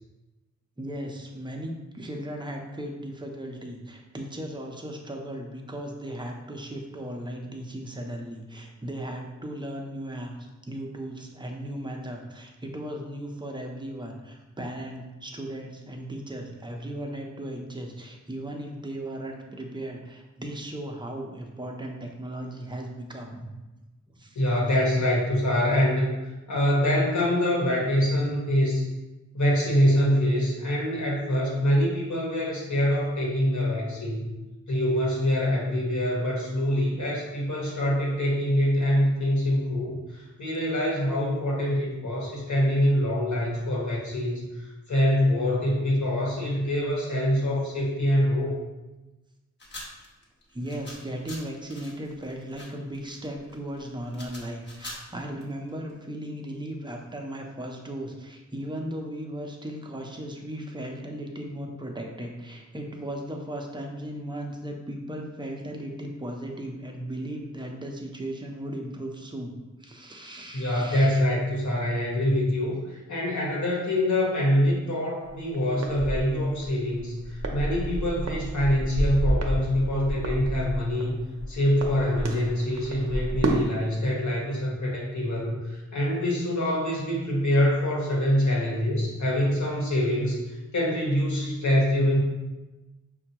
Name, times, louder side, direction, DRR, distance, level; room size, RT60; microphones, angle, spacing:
voice 1, 0.8-10.3 10.7-23.5 24.2-24.4 46.2-46.3 50.5-71.2, right 1 dB, 15° right, 1 dB, 0.6 m, -36 dB
voice 2, 24.3-26.1 26.5-28.8 29.3-34.3 34.7-48.5 70.5-81.1 81.5-92.2, equal, 70° left, -4 dB, 1.2 m, -25 dB
sound 1, 49.6-55.9, left 1 dB, 35° left, 1.0 m, -44 dB
sound 2, 75.2-83.7, right 1 dB, 60° right, 0.6 m, -30 dB
5.8 x 2.2 x 2.9 m, 1.1 s
wide cardioid pair, 105°, 30 cm